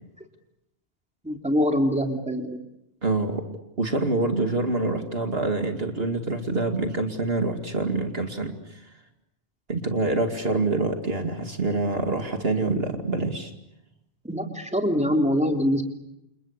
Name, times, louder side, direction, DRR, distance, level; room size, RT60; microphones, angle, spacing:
voice 1, 1.2-2.6 14.2-15.8, equal, 5° right, 3 dB, 3.3 m, -24 dB
voice 2, 3.0-3.4 3.8-8.6 9.7-13.5, right 2 dB, 65° right, 5 dB, 2.7 m, -26 dB
29.5 x 28.5 x 6.7 m, 0.86 s
omnidirectional pair, 1.1 m